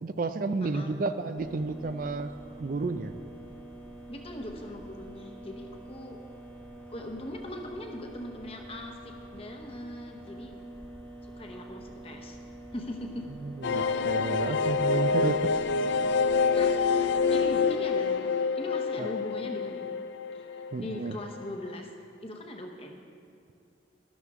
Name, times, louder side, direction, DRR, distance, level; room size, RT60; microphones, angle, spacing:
voice 1, 0.0-2.3 2.6-3.1 13.6-15.4 19.0-19.1 20.7-21.2, right 3 dB, 45° right, 10 dB, 0.4 m, -31 dB
voice 2, 0.6-0.9 4.1-6.2 6.9-10.5 11.4-12.4 12.7-13.3 16.5-19.9 20.3-21.9 22.2-23.0, left 1 dB, 30° left, 3 dB, 1.0 m, -40 dB
sound 1, 1.4-17.6, right 1 dB, 10° left, 1.2 m, -46 dB
sound 2, 13.6-21.1 21.4-21.5 21.7-21.8, left 5 dB, 65° left, 0.3 m, -27 dB
12.5 x 12.5 x 3.6 m, 2.4 s
head